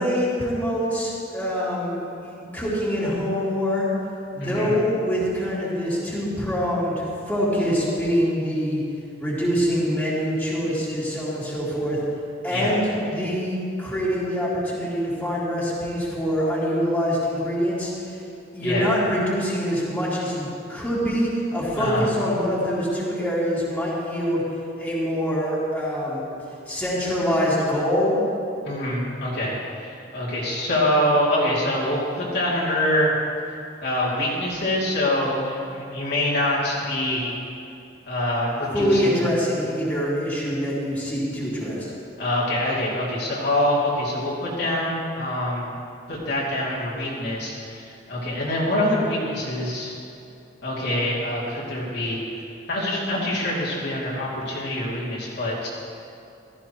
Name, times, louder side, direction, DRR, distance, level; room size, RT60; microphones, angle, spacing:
voice 1, 0.0-3.9 4.3-8.8 9.2-12.0 12.4-18.2 18.5-24.4 24.8-26.2 26.7-28.2 38.7-41.9, equal, 10° left, -9 dB, 3.1 m, -24 dB
voice 2, 4.4-4.7 12.5-12.8 18.6-18.9 21.8-22.1 28.6-33.1 33.8-37.3 38.1-39.3 42.2-45.7 46.1-49.9 50.6-55.7, left 1 dB, 60° left, -7 dB, 2.9 m, -25 dB
15.5 x 14.0 x 3.1 m, 2.6 s
head